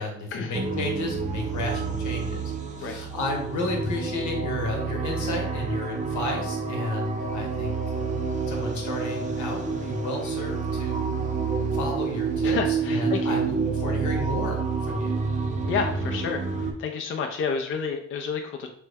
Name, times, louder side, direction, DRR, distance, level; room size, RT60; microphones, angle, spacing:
voice 1, 0.0-2.5 2.8-8.2 8.5-11.1 11.7-15.1, left 1 dB, 75° left, 1 dB, 1.0 m, -32 dB
sound 1, 0.5-16.7, right 4 dB, 25° right, 0.5 m, -28 dB
voice 2, 12.4-13.2 15.7-18.7, left 6 dB, 45° left, 3 dB, 0.4 m, -30 dB
3.2 x 2.1 x 3.4 m, 0.66 s
cardioid pair, 90°, 30 cm